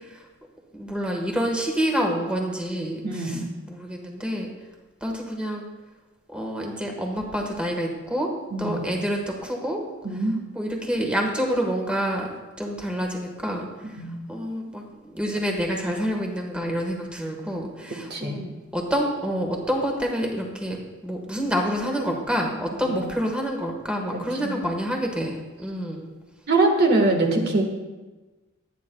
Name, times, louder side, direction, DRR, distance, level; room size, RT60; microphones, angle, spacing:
voice 1, 0.7-4.5 5.0-5.6 6.3-8.3 8.6-9.8 10.5-12.3 12.6-13.7 14.3-14.8 15.1-20.8 21.0-26.1 27.3-27.6, equal, 5° right, 0 dB, 1.4 m, -27 dB
voice 2, 3.0-3.5 8.5-8.8 10.0-10.3 14.0-14.2 18.1-18.4 22.8-23.0 24.1-24.6 26.5-27.6, right 2 dB, 50° right, 2 dB, 1.6 m, -23 dB
22.0 x 9.4 x 2.3 m, 1.2 s
head